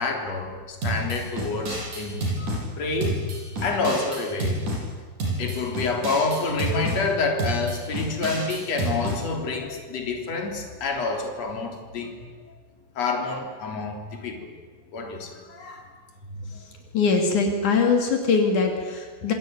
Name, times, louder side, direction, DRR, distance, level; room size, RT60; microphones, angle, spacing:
voice 1, 0.0-3.2 3.6-4.6 5.4-12.3 13.0-14.5 14.9-15.8 16.3-16.5, left 3 dB, 60° left, 3 dB, 4.4 m, -28 dB
sound 1, 0.8-2.6 3.0-4.8 5.2-7.0 7.4-9.2, right 1 dB, 85° right, 8.8 m, -29 dB
voice 2, 16.9-19.3, left 4 dB, 80° left, 2 dB, 4.1 m, -22 dB
27.5 x 22.0 x 9.4 m, 1.5 s
omnidirectional pair, 3.4 m